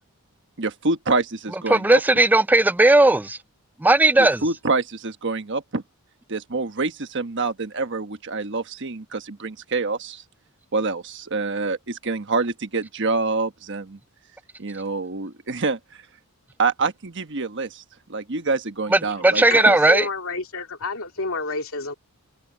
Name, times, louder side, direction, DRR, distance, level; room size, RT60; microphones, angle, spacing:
voice 1, 0.6-2.0 4.2-5.8 6.3-10.2 10.7-14.0 14.6-15.8 16.6-17.8 18.1-19.7, right 3 dB, 55° right, 1.2 m, -26 dB
voice 2, 1.7-3.4 3.8-4.4 18.9-20.1, right 2 dB, 10° right, 0.3 m, -16 dB
voice 3, 19.5-21.9, left 3 dB, 65° left, 2.6 m, -29 dB
head